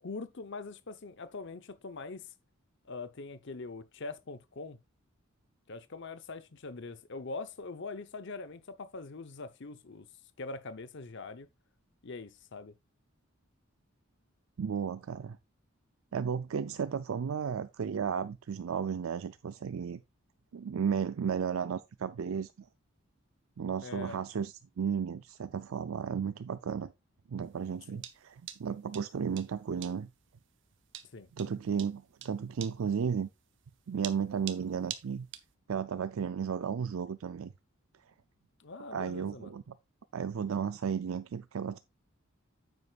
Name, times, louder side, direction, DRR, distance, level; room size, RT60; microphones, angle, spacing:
voice 1, 0.0-2.3 2.8-4.8 5.7-10.1 10.4-11.5 12.0-12.7 23.8-24.2 27.9-28.0 31.1-31.3 38.6-39.6, left 3 dB, 60° left, 0.8 m, -43 dB
voice 2, 14.6-15.4 16.1-20.0 20.5-22.5 23.6-26.9 27.3-30.1 31.3-33.3 33.9-35.3 35.7-37.5 38.9-39.7 40.1-41.8, right 7 dB, 75° right, 0.4 m, -34 dB
sound 1, 27.5-35.5, right 11 dB, 60° right, 0.9 m, -45 dB
9.5 x 7.9 x 2.4 m
head